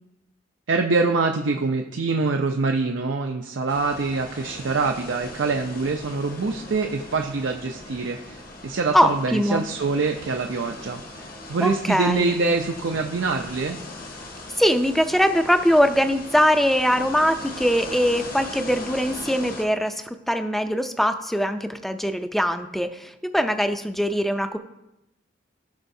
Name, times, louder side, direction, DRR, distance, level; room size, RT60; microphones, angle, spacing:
voice 1, 0.7-11.0 11.5-13.8, right 3 dB, 80° right, 3 dB, 0.5 m, -25 dB
sound 1, 3.7-19.6, left 2 dB, 50° left, 1.0 m, -39 dB
voice 2, 8.9-9.6 11.6-12.3 14.6-24.6, equal, ahead, 8 dB, 0.4 m, -22 dB
15.5 x 5.5 x 2.7 m, 0.90 s
head